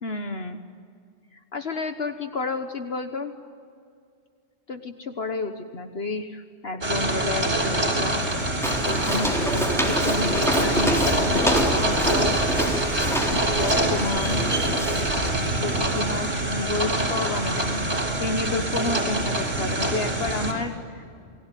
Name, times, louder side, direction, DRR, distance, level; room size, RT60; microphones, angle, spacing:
voice 1, 0.0-0.6 1.3-3.3 4.7-8.1 8.9-12.4 13.3-14.5 15.6-17.8 18.2-21.0, left 3 dB, 60° left, 7 dB, 1.5 m, -31 dB
sound 1, 6.8-20.5, right 1 dB, 75° right, 4.8 m, -25 dB
Walk footsteps, 8.6-15.3, equal, ahead, 3.8 m, -26 dB
29.0 x 20.5 x 9.2 m, 2.3 s
omnidirectional pair, 1.2 m